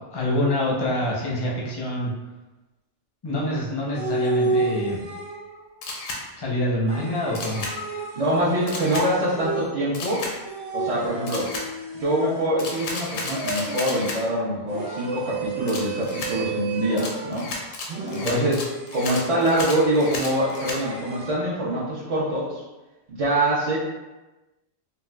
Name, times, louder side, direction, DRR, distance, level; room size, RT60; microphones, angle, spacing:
voice 1, 0.0-2.1 3.2-5.0 6.4-7.7 18.2-18.5, left 1 dB, 35° left, -4 dB, 0.4 m, -26 dB
sound 1, 4.0-5.7 6.9-10.0 10.4-12.8 13.3-14.0 14.7-17.5 17.9-21.4, right 3 dB, 80° right, 1.2 m, -31 dB
Camera, 5.8-6.2 7.4-7.7 8.7-9.1 9.9-10.3 11.3-11.7 12.6-14.2 15.7-16.3 17.0-20.8, left 3 dB, 85° left, 1.0 m, -33 dB
voice 2, 8.1-10.2 10.7-11.5 11.9-17.5 18.1-18.6 18.9-22.6 23.1-23.8, right 1 dB, 50° right, -9 dB, 0.4 m, -24 dB
3.8 x 2.2 x 2.2 m, 1.1 s
omnidirectional pair, 1.3 m